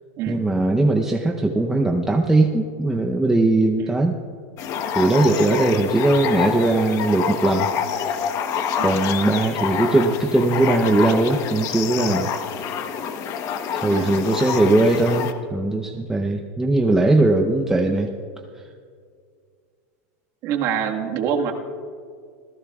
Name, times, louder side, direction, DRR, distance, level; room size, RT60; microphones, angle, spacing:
voice 1, 0.3-4.2 4.9-7.7 8.8-12.3 13.7-18.1, right 2 dB, 5° right, 1 dB, 0.8 m, -19 dB
sound 1, 4.6-15.3, left 7 dB, 40° left, 1.1 m, -27 dB
voice 2, 13.9-14.2 20.4-21.5, right 8 dB, 45° right, 2 dB, 1.7 m, -25 dB
27.0 x 15.5 x 2.4 m, 2.1 s
supercardioid pair, 140°, 8 cm